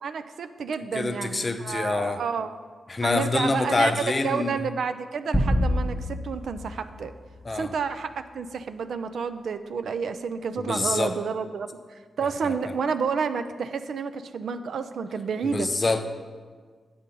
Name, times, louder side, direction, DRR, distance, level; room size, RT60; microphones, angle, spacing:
voice 1, 0.0-2.6 3.0-7.1 7.5-15.7, right 5 dB, 75° right, 10 dB, 0.4 m, -30 dB
voice 2, 0.9-2.2 2.9-4.6 7.4-7.7 10.6-11.1 12.4-12.5 15.4-16.1, left 3 dB, 35° left, 7 dB, 0.6 m, -26 dB
sound 1, 5.3-8.0, equal, 15° left, 1.2 m, -28 dB
8.5 x 3.8 x 6.7 m, 1.5 s
cardioid pair, 85°, 0 cm